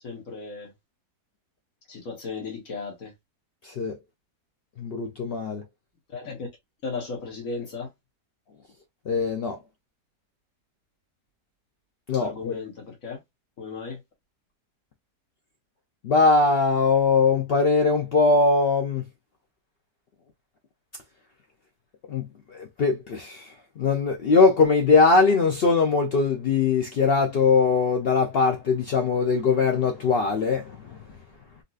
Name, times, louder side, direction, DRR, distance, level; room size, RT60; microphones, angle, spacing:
voice 1, 0.0-0.7 1.9-3.1 6.1-6.5 6.8-7.9 12.1-13.2 13.6-14.0, left 4 dB, 60° left, 1.3 m, -35 dB
voice 2, 3.6-4.0 4.8-5.6 9.1-9.6 12.1-12.6 16.0-19.0 22.1-31.0, left 4 dB, 85° left, 0.5 m, -21 dB
3.9 x 2.4 x 2.4 m
omnidirectional pair, 1.8 m